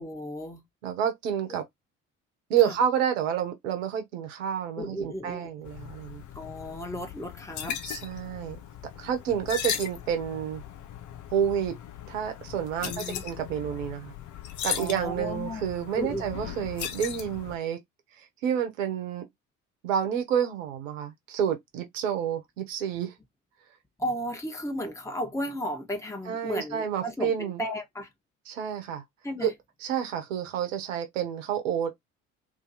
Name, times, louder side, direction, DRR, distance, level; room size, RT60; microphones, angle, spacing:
voice 1, 0.0-0.6 2.6-2.7 4.8-5.5 6.3-7.8 12.8-13.2 14.8-15.7 16.0-16.3 24.0-28.1 29.2-29.5, equal, 10° left, 1.2 m, -34 dB
voice 2, 0.8-1.6 2.5-6.2 7.8-8.6 9.0-10.6 11.3-11.7 12.1-14.1 14.6-17.8 18.4-19.3 19.8-23.1 26.3-27.6 28.5-29.0 29.4-29.5 29.8-32.0, right 9 dB, 80° right, 1.1 m, -29 dB
sound 1, 5.6-17.6, left 9 dB, 50° left, 0.7 m, -38 dB
3.0 x 2.8 x 4.0 m
hypercardioid pair, 55°, 38 cm